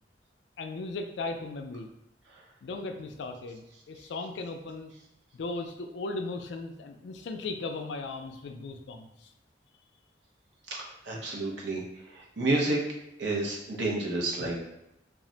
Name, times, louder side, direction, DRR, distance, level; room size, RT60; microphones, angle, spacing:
voice 1, 0.6-1.9 2.6-4.9 5.3-9.3, left 3 dB, 70° left, 6 dB, 0.3 m, -37 dB
voice 2, 11.1-11.8 12.1-12.8 13.2-14.7, right 2 dB, 80° right, -2 dB, 0.7 m, -29 dB
2.4 x 2.1 x 3.7 m, 0.88 s
head